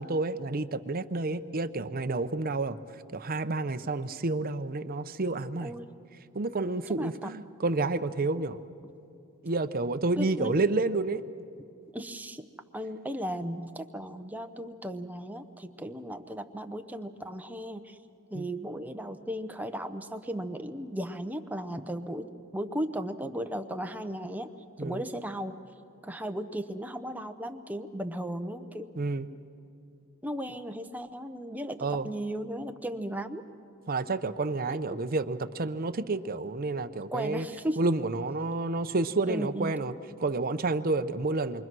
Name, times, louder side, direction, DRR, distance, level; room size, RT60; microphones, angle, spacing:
voice 1, 0.0-2.8 3.1-5.7 6.3-8.6 9.4-11.2 18.3-18.5 24.8-25.0 29.0-29.3 31.8-32.1 33.9-37.5 37.8-39.9 40.2-41.6, right 3 dB, 40° right, 10 dB, 0.7 m, -29 dB
voice 2, 6.9-7.3 10.2-10.6 11.9-12.5 12.7-18.0 18.3-22.3 22.5-24.5 24.8-25.6 26.0-28.9 30.2-33.5 34.9-35.0 37.1-37.8 39.3-39.8, equal, 5° right, 6 dB, 0.8 m, -36 dB
28.0 x 24.0 x 6.2 m, 2.7 s
head